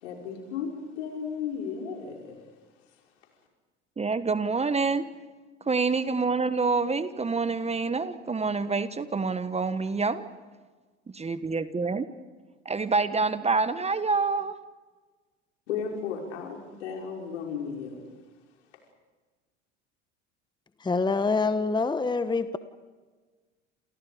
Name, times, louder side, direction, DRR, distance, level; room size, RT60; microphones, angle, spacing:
voice 1, 0.0-2.4 15.7-18.0, left 6 dB, 75° left, 1 dB, 5.6 m, -34 dB
voice 2, 4.0-5.1 5.6-10.2 11.2-12.0 12.6-14.5, right 4 dB, 15° right, 12 dB, 1.3 m, -27 dB
voice 3, 20.8-22.6, left 4 dB, 10° left, 11 dB, 1.1 m, -26 dB
29.5 x 28.5 x 5.1 m, 1.4 s
hypercardioid pair, 75°, 36 cm